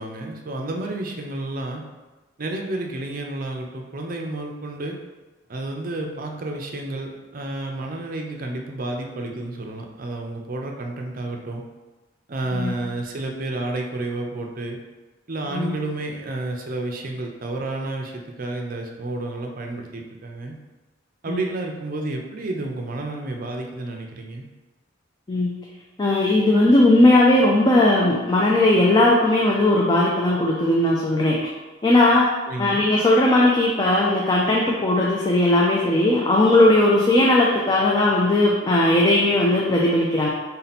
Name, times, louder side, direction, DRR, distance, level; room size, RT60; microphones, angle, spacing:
voice 1, 0.0-1.8 2.4-5.0 5.5-11.6 12.3-14.8 15.3-20.6 21.2-24.5 32.5-32.8, right 2 dB, 45° right, 2 dB, 0.5 m, -30 dB
voice 2, 26.0-31.4 31.8-32.3 32.6-40.3, left 1 dB, 20° left, -4 dB, 0.4 m, -18 dB
3.8 x 2.8 x 4.1 m, 1.2 s
head